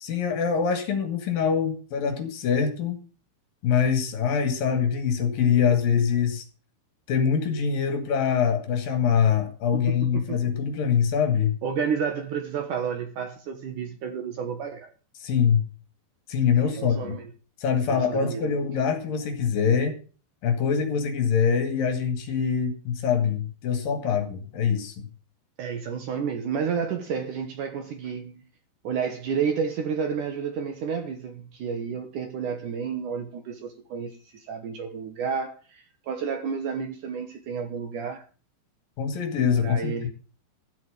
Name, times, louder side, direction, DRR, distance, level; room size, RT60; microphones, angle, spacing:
voice 1, 0.0-3.0 3.6-6.5 7.1-11.5 15.2-15.7 16.3-17.2 17.6-19.9 20.4-25.1 39.0-40.1, left 7 dB, 55° left, 3.4 m, -24 dB
voice 2, 11.6-14.9 16.6-17.3 17.9-18.5 25.6-28.4 28.8-38.2 39.6-40.1, right 6 dB, 70° right, 2.0 m, -31 dB
13.5 x 7.8 x 6.7 m
omnidirectional pair, 5.5 m